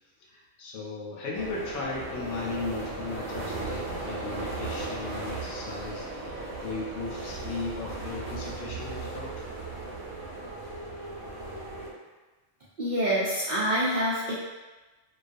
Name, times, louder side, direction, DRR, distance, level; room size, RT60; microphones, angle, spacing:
voice 1, 0.3-9.3, left 3 dB, 75° left, -4 dB, 0.9 m, -36 dB
sound 1, 1.3-11.9, right 2 dB, 80° right, 0.9 m, -36 dB
voice 2, 12.8-14.4, equal, 65° right, -9 dB, 0.4 m, -26 dB
2.3 x 2.3 x 2.5 m, 1.2 s
omnidirectional pair, 1.3 m